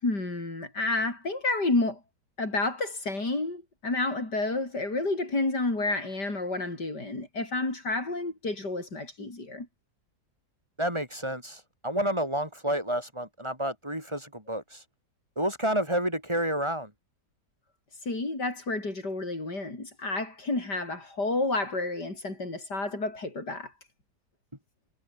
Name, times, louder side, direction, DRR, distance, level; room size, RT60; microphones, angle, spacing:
voice 1, 0.0-2.0 2.4-9.7 18.0-23.7, left 2 dB, 85° left, 6.8 m, -30 dB
voice 2, 10.8-14.9 15.4-16.9, right 1 dB, 15° right, 7.4 m, -30 dB
omnidirectional pair, 1.8 m